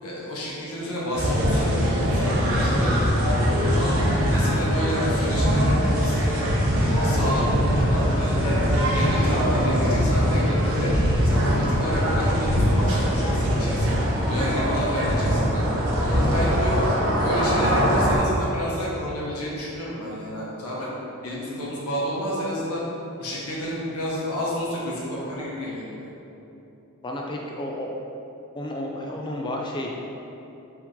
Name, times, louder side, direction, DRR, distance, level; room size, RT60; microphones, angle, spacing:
voice 1, 0.0-4.0 4.3-6.2 7.0-8.6 8.9-10.9 11.2-14.0 14.3-15.6 15.9-16.8 17.2-20.9 21.2-22.8 23.2-26.1, equal, 90° left, -6 dB, 1.0 m, -30 dB
sound 1, 1.1-18.2, equal, 65° right, 0.8 m, -22 dB
voice 2, 27.0-27.9 28.5-30.1, left 1 dB, 20° left, -1 dB, 0.3 m, -31 dB
4.6 x 2.8 x 3.7 m, 3.0 s
head